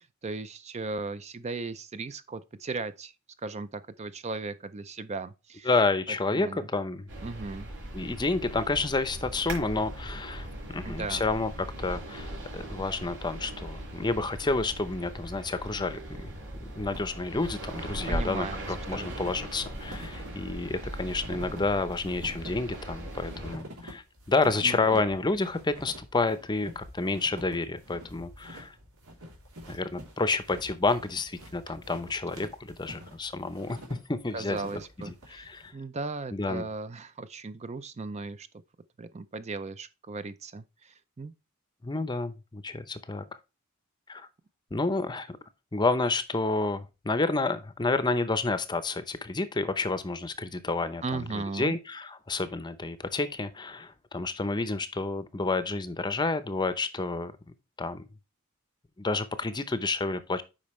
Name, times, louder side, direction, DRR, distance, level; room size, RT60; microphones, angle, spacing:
voice 1, 0.2-3.1 3.4-5.7 6.3-6.6 7.2-7.7 10.7-11.2 18.1-19.1 24.6-25.0 34.3-38.5 39.0-41.3 51.0-51.8, right 3 dB, 30° right, 0.4 m, -37 dB
voice 2, 5.6-7.1 7.9-10.5 10.7-11.5 11.8-16.3 16.6-28.7 29.7-33.8 34.1-34.6 35.3-35.7 36.3-36.6 41.8-43.2 44.1-44.3 44.7-45.4 45.7-57.3 57.8-58.0 59.0-60.4, left 3 dB, 20° left, 0.6 m, -29 dB
sound 1, 7.1-23.5, right 1 dB, 60° right, 4.9 m, -39 dB
sound 2, 16.9-35.7, equal, 85° right, 3.1 m, -47 dB
8.7 x 5.2 x 3.1 m
head